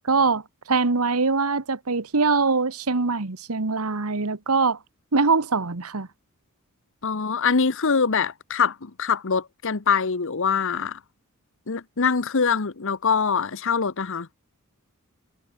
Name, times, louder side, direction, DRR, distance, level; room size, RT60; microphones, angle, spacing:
voice 1, 0.0-4.8 5.1-6.1, right 4 dB, 85° right, 1.4 m, -23 dB
voice 2, 7.0-11.0 11.7-14.3, left 5 dB, 65° left, 1.0 m, -24 dB
head